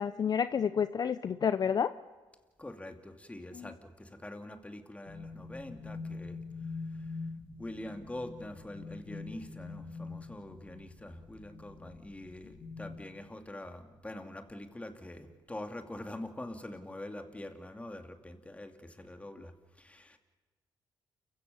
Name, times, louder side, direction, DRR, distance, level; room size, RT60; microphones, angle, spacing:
voice 1, 0.0-1.9 3.6-3.7, left 7 dB, 45° left, 13 dB, 0.7 m, -29 dB
voice 2, 2.6-6.4 7.0-7.2 7.6-20.2, left 1 dB, 15° left, 6 dB, 2.6 m, -44 dB
sound 1, 5.1-13.0, left 4 dB, 80° left, 7.3 m, -44 dB
29.0 x 16.0 x 7.1 m, 1.3 s
cardioid pair, 80°, 9 cm